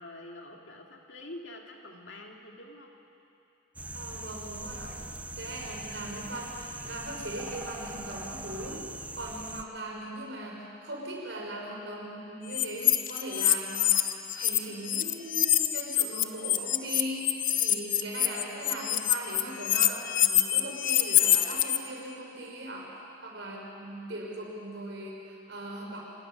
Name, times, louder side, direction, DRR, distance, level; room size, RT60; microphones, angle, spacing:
voice 1, 0.0-2.9, left 1 dB, 70° left, 1 dB, 2.4 m, -46 dB
sound 1, 3.8-9.6, right 2 dB, 5° right, 0.6 m, -41 dB
voice 2, 3.9-5.1 5.4-8.8 9.1-13.9 14.3-22.9 23.2-26.0, right 1 dB, 65° right, -2 dB, 5.2 m, -39 dB
sound 2, 12.5-14.6 14.8-21.8, left 12 dB, 45° left, 0.7 m, -25 dB
25.5 x 13.0 x 9.9 m, 2.7 s
head